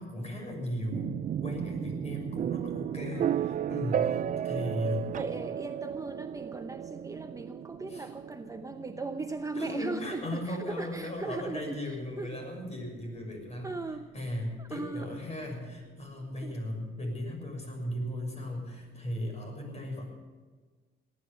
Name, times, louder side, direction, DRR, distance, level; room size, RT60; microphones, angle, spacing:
voice 1, 0.0-5.2 7.9-8.1 9.6-13.7 14.1-20.1, left 1 dB, 35° left, 2 dB, 6.5 m, -37 dB
sound 1, 0.9-14.7, right 9 dB, 40° right, 0.4 m, -35 dB
voice 2, 3.1-3.5 4.4-4.6 5.1-12.4 13.6-14.1 14.6-15.3 16.4-16.6, right 3 dB, 15° right, 7 dB, 0.8 m, -39 dB
18.5 x 10.5 x 6.9 m, 1.4 s
cardioid pair, 90°, 20 cm